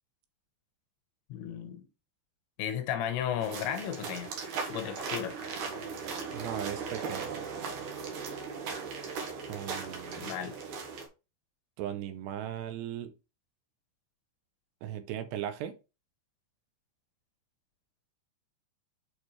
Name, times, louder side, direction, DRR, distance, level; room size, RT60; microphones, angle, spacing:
voice 1, 1.3-1.8 2.6-4.3 4.7-5.4 10.2-10.5, left 9 dB, 85° left, 3.4 m, -34 dB
sound 1, 3.4-11.1, right 5 dB, 60° right, 2.4 m, -38 dB
voice 2, 6.3-7.3 9.5-10.3 11.8-13.1 14.8-15.8, right 10 dB, 80° right, 2.8 m, -37 dB
8.5 x 4.7 x 3.1 m
omnidirectional pair, 5.1 m